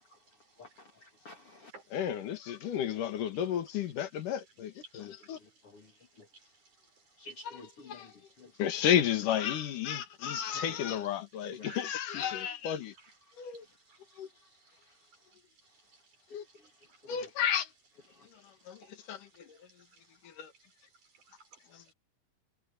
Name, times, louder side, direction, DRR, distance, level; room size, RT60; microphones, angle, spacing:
voice 1, 0.6-1.7 5.6-5.9 7.2-8.1 8.4-8.5 11.6-11.7 17.0-17.3, left 3 dB, 45° left, 3.1 m, -50 dB
voice 2, 1.9-5.4 7.4-8.1 8.6-12.9 13.4-13.6 14.2-14.3 16.3-16.4 17.1-17.7 18.7-19.6 20.2-20.5 21.7-21.8, left 9 dB, 70° left, 3.2 m, -32 dB
voice 3, 6.2-6.5 7.5-7.6 11.6-11.8 12.2-12.4 13.0-13.1 13.9-14.0 16.6-17.1 18.7-19.2 19.9-20.0 21.1-21.6, right 4 dB, 60° right, 7.4 m, -54 dB
omnidirectional pair, 4.0 m